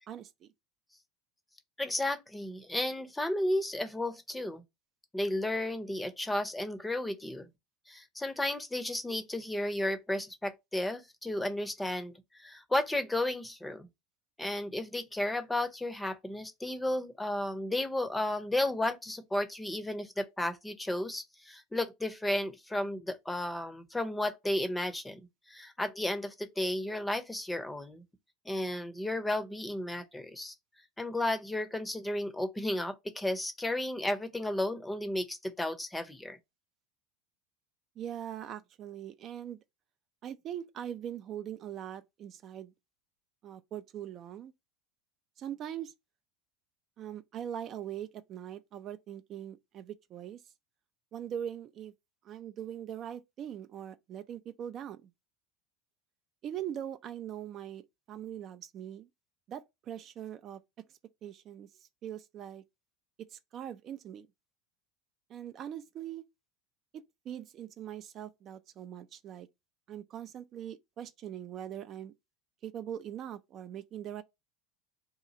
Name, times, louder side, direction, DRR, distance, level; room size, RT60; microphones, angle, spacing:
voice 1, 0.1-0.5 38.0-39.6 40.2-42.7 43.4-44.5 45.4-45.9 47.0-50.4 51.1-51.9 52.2-55.1 56.4-59.1 59.5-60.6 61.2-62.6 63.3-64.3 65.3-66.2 66.9-69.5 69.9-72.1 72.6-74.2, right 10 dB, 45° right, 0.4 m, -41 dB
voice 2, 1.8-4.6 5.1-7.5 7.9-12.1 12.4-13.9 14.4-25.2 25.5-28.0 28.5-30.5 31.0-36.4, left 1 dB, 10° left, 0.6 m, -33 dB
2.8 x 2.4 x 4.0 m
hypercardioid pair, 85°, 0 cm